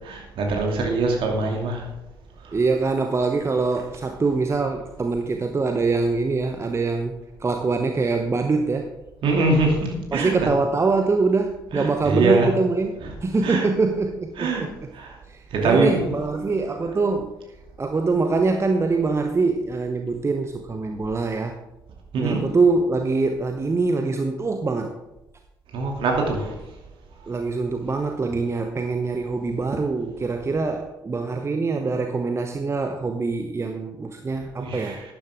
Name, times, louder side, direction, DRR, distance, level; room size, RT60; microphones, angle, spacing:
voice 1, 0.0-1.9 2.4-2.6 9.2-10.5 11.7-12.5 13.0-13.1 13.4-13.7 14.4-14.6 14.9-15.2 15.5-16.1 22.1-22.4 25.7-26.6 34.6-35.0, right 3 dB, 50° right, 0 dB, 2.6 m, -23 dB
voice 2, 2.5-8.9 10.1-14.9 15.3-17.4 17.8-21.6 22.2-25.0 27.3-35.0, right 3 dB, 25° right, 6 dB, 0.8 m, -24 dB
12.0 x 10.0 x 3.6 m, 0.92 s
figure-of-eight pair, 45°, 11 cm